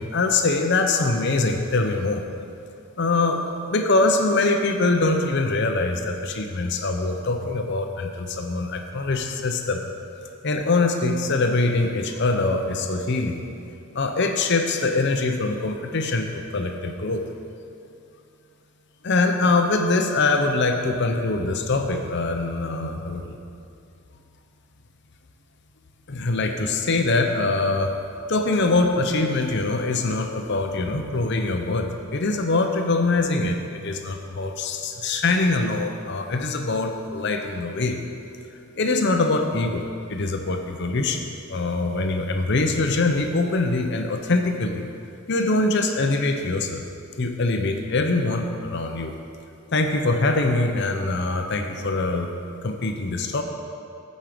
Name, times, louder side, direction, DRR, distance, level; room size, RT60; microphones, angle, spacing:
voice 1, 0.0-2.2 3.0-9.8 10.4-13.5 13.9-17.3 19.0-23.4 26.1-27.9 28.3-38.0 38.8-41.2 41.5-44.9 45.3-46.8 47.2-49.2 49.7-52.3 52.6-53.4, left 3 dB, 60° left, 5 dB, 0.7 m, -23 dB
14.5 x 5.4 x 5.1 m, 2.5 s
head